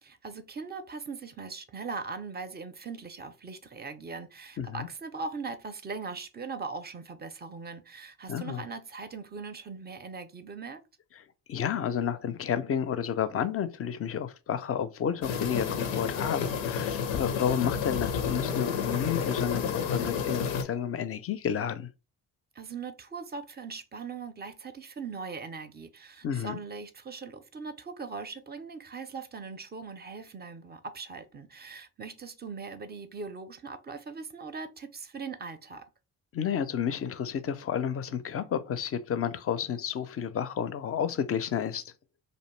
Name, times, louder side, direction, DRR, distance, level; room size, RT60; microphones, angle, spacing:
voice 1, 0.0-10.8 22.6-35.8, right 4 dB, 25° right, 0.4 m, -40 dB
voice 2, 4.6-4.9 8.3-8.6 11.5-21.9 26.2-26.6 36.3-41.9, left 8 dB, 35° left, 0.4 m, -31 dB
sound 1, 15.2-20.6, left 7 dB, 90° left, 0.5 m, -30 dB
2.6 x 2.1 x 3.0 m
hypercardioid pair, 50°, 44 cm